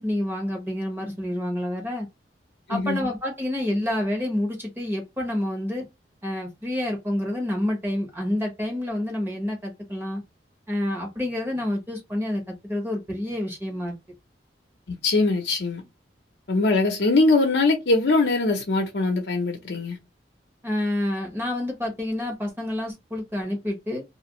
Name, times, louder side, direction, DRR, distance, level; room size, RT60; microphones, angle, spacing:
voice 1, 0.0-2.1 2.7-5.8 6.2-10.2 10.7-14.0 20.6-24.0, left 1 dB, 10° right, 1.1 m, -28 dB
voice 2, 14.9-15.8 16.5-20.0, left 3 dB, 70° left, 0.7 m, -22 dB
2.9 x 2.5 x 3.0 m
head